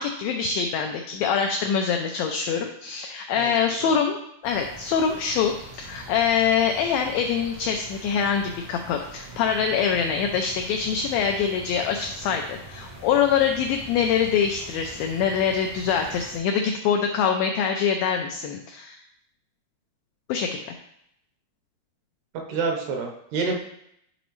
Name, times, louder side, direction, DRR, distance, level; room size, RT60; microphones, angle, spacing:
voice 1, 0.0-19.0 20.3-20.7, left 7 dB, 90° left, 4 dB, 2.0 m, -24 dB
voice 2, 3.4-3.9 22.5-23.6, right 4 dB, 75° right, 1 dB, 2.9 m, -28 dB
sound 1, 4.4-16.4, right 1 dB, 30° right, 0.8 m, -43 dB
11.0 x 4.0 x 3.1 m, 0.75 s
omnidirectional pair, 4.8 m